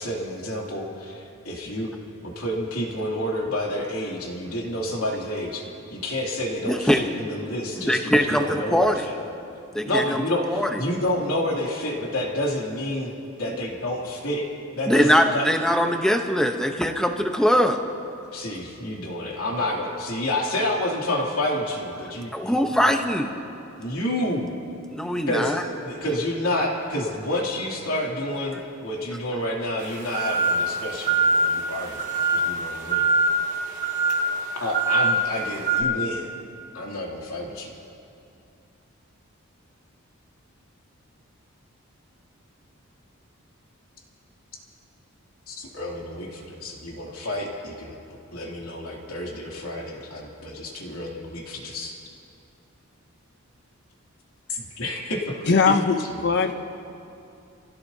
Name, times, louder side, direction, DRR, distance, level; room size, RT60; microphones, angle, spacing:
voice 1, 0.0-1.9 2.2-9.2 9.8-13.1 13.4-14.5 14.7-15.5 18.3-22.9 23.8-24.5 25.3-33.1 34.6-36.3 36.7-37.7 45.5-48.0 48.3-52.0 54.5-55.3 55.7-55.8 56.1-56.5, left 1 dB, 85° left, -2 dB, 2.9 m, -29 dB
voice 2, 6.7-7.0 7.7-9.1 9.7-10.2 10.5-10.8 14.9-17.8 22.3-23.3 24.9-25.6, equal, 5° left, 4 dB, 0.9 m, -22 dB
sound 1, 29.8-35.8, right 2 dB, 35° right, 1.7 m, -24 dB
voice 3, 55.5-56.5, left 4 dB, 55° left, 7 dB, 0.7 m, -20 dB
28.5 x 16.5 x 2.8 m, 2.7 s
head